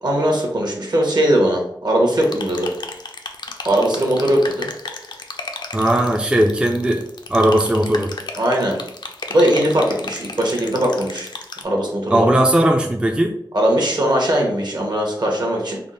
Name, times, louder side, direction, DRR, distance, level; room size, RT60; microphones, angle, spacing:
voice 1, 0.0-2.7 3.6-4.7 8.4-8.8 9.3-11.3 11.6-12.3 13.5-15.8, right 1 dB, 60° right, 0 dB, 1.0 m, -19 dB
sound 1, 2.2-11.6, left 3 dB, 65° left, 0.4 m, -34 dB
voice 2, 5.7-8.2 12.1-13.4, right 1 dB, 10° right, 3 dB, 0.3 m, -18 dB
3.5 x 2.0 x 3.8 m, 0.74 s
wide cardioid pair, 80°, 8 cm